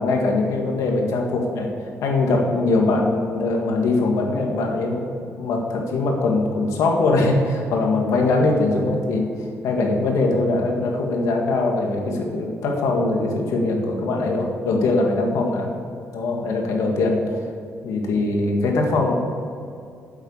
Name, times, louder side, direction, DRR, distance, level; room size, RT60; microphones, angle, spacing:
voice 1, 0.0-5.1 5.4-9.3 9.6-15.7 16.1-17.4 17.8-19.1, left 2 dB, 85° left, 1 dB, 1.9 m, -21 dB
8.7 x 8.1 x 7.2 m, 2.4 s
cardioid pair, 155°, 5 cm